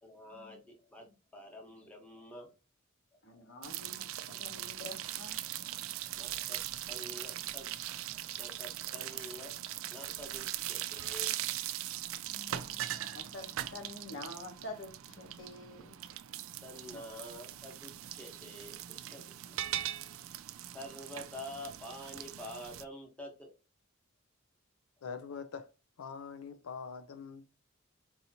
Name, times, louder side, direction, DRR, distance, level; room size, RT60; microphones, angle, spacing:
voice 1, 0.0-1.1 1.3-2.5 3.1-3.8 6.2-7.7 8.4-11.3 16.3-16.4 16.6-19.6 20.7-23.5, left 1 dB, 5° left, 1.0 m, -48 dB
voice 2, 3.2-5.4 12.3-15.9 16.9-17.0, left 2 dB, 60° left, 1.0 m, -48 dB
sound 1, 3.6-22.8, right 13 dB, 70° right, 0.3 m, -40 dB
voice 3, 25.0-25.7 26.0-27.4, left 6 dB, 85° left, 0.5 m, -43 dB
4.6 x 2.8 x 2.7 m
head